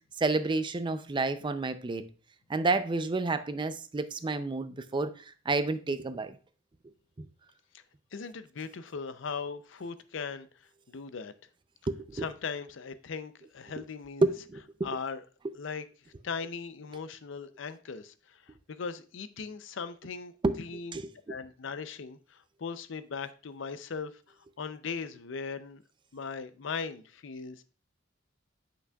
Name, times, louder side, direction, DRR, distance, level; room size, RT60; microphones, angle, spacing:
voice 1, 0.2-2.0 2.5-6.4 11.9-12.3 13.8-13.9 14.2-14.9 15.4-15.5 20.4-20.6 20.9-21.4, right 3 dB, 25° right, 0.4 m, -30 dB
voice 2, 8.1-10.5 10.9-11.3 12.1-14.3 14.8-15.2 15.5-15.8 16.2-20.3 20.6-21.0 21.3-24.1 24.6-25.8 26.1-27.6, left 5 dB, 70° left, 0.5 m, -38 dB
8.3 x 5.9 x 2.3 m
head